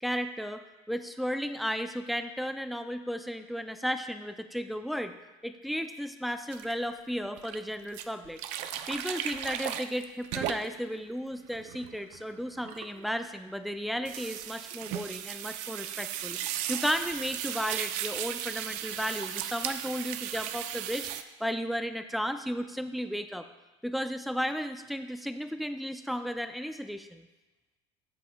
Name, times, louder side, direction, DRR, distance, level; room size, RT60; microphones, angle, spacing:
voice 1, 0.0-5.1 5.4-8.4 8.9-21.1 21.4-23.5 23.8-27.3, equal, ahead, 8 dB, 0.4 m, -34 dB
sound 1, 6.5-6.7 7.4-7.6 7.9-10.9 11.4-13.2 14.1-21.2, right 11 dB, 65° right, 0.5 m, -36 dB
13.5 x 7.6 x 2.3 m, 1.1 s
cardioid pair, 140°, 13 cm